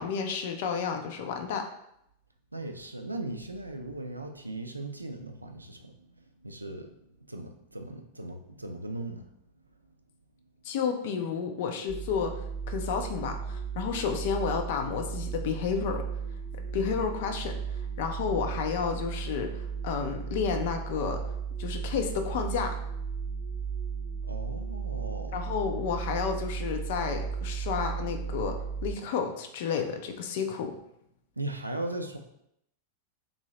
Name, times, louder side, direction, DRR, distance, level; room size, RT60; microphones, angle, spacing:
voice 1, 0.0-1.7 10.6-12.4 12.7-16.0 16.7-21.2 21.6-22.8 25.3-30.7, left 6 dB, 50° left, 5 dB, 0.4 m, -31 dB
voice 2, 2.5-6.1 6.4-6.9 7.3-9.2 24.2-25.4 31.4-32.2, right 2 dB, 85° right, 5 dB, 0.3 m, -38 dB
sound 1, 11.9-29.0, right 6 dB, 10° right, 0.8 m, -35 dB
2.9 x 2.6 x 3.0 m, 0.77 s
figure-of-eight pair, 90°, 0 cm